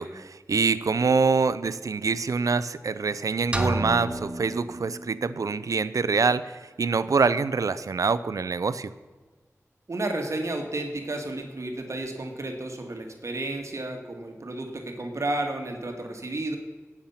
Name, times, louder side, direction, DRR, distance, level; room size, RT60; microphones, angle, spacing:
voice 1, 0.0-8.9, right 4 dB, 85° right, 15 dB, 0.5 m, -25 dB
sound 1, 3.5-5.5, right 1 dB, 20° right, 1.4 m, -31 dB
voice 2, 9.9-16.6, right 2 dB, 60° right, 3 dB, 2.1 m, -32 dB
17.5 x 7.3 x 5.7 m, 1.4 s
wide cardioid pair, 60°, 6 cm